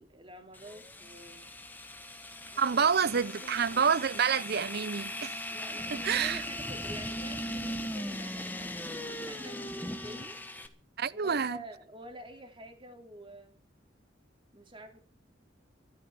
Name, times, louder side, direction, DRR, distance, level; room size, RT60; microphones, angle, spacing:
voice 1, 0.0-1.5 2.4-4.0 5.5-10.4 11.1-13.6 14.5-15.0, right 1 dB, 25° right, 3.1 m, -49 dB
sound 1, 0.5-10.7, left 1 dB, 10° left, 1.5 m, -39 dB
voice 2, 2.6-5.4 5.9-6.4 11.0-11.6, right 6 dB, 55° right, 0.7 m, -28 dB
13.5 x 12.0 x 7.3 m
head